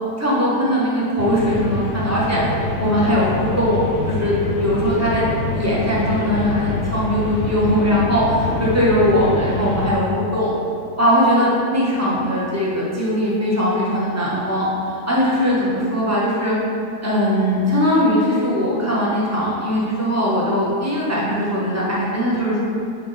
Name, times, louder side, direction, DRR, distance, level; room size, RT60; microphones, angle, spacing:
voice 1, 0.2-2.4 2.8-10.5 11.0-16.5 17.0-22.6, equal, 10° right, -7 dB, 1.0 m, -20 dB
sound 1, 1.2-9.9, left 2 dB, 70° left, 1.1 m, -26 dB
5.8 x 4.3 x 4.1 m, 2.5 s
omnidirectional pair, 1.8 m